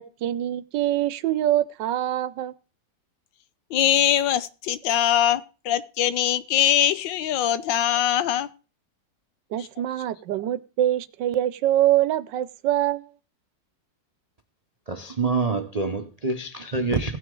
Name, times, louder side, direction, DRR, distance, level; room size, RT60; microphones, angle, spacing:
voice 1, 0.0-2.5 9.5-13.1, right 12 dB, 80° right, 1.3 m, -24 dB
voice 2, 3.7-8.5 9.6-9.7, left 11 dB, 85° left, 1.4 m, -22 dB
voice 3, 14.9-17.2, right 3 dB, 60° right, 0.4 m, -26 dB
17.5 x 6.2 x 3.8 m
omnidirectional pair, 2.0 m